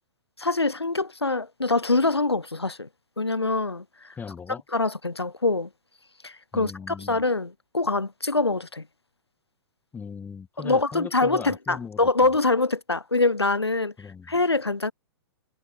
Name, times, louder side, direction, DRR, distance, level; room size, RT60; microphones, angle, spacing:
voice 1, 0.4-2.9 3.2-4.1 4.7-5.7 6.2-8.9 10.6-13.9 14.3-14.9, left 3 dB, 80° left, 2.1 m, -24 dB
voice 2, 4.2-4.6 6.5-7.2 9.9-12.1 14.0-14.3, left 6 dB, 15° left, 6.0 m, -38 dB
figure-of-eight pair, 110°, 13 cm